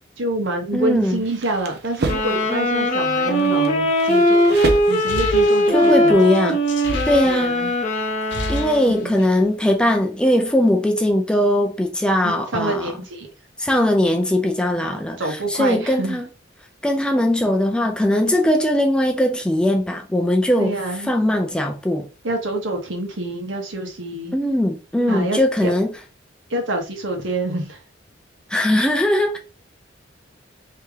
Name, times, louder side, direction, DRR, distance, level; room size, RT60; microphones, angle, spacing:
voice 1, 0.2-4.6 4.9-6.4 7.2-7.7 8.9-9.1 12.2-13.3 14.8-16.2 20.6-21.1 22.2-24.3 25.1-25.7 26.5-27.8, right 2 dB, 80° right, 1.0 m, -27 dB
voice 2, 0.7-1.2 5.7-6.6 7.1-7.6 8.5-12.9 13.6-16.3 16.8-20.8 21.0-22.1 24.3-25.9 28.5-29.4, left 1 dB, 5° left, 0.4 m, -20 dB
sound 1, 1.0-2.4 3.2-5.3, right 3 dB, 55° right, 0.5 m, -29 dB
sound 2, 2.0-9.1, equal, 35° left, 0.8 m, -20 dB
sound 3, 4.8-7.7 8.1-9.4, left 2 dB, 65° left, 0.8 m, -31 dB
3.2 x 2.8 x 3.5 m
head